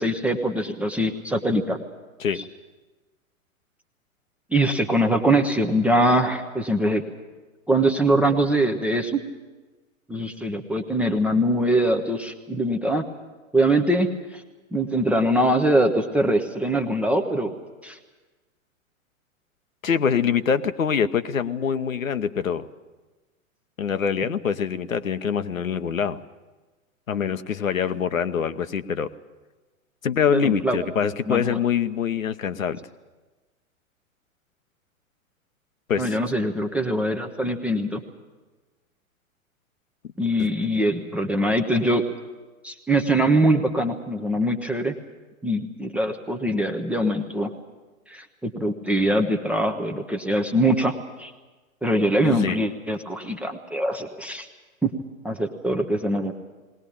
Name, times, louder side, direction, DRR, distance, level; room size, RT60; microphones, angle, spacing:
voice 1, 0.0-1.8 2.3-2.4 4.5-7.0 7.7-9.2 10.1-13.1 13.5-14.4 14.7-17.5 17.8-18.0 30.3-30.8 31.3-31.6 36.0-38.0 40.2-42.0 42.6-44.9 45.4-47.5 48.1-51.3 51.8-54.5 54.8-54.9 55.2-56.3, right 1 dB, 5° right, 4 dB, 0.6 m, -23 dB
voice 2, 19.8-22.7 23.8-26.2 27.1-29.1 30.0-32.8 35.9-36.2 40.4-40.5 52.2-52.6, left 7 dB, 70° left, 11 dB, 1.0 m, -24 dB
20.0 x 18.5 x 8.5 m, 1.2 s
figure-of-eight pair, 105°, 42 cm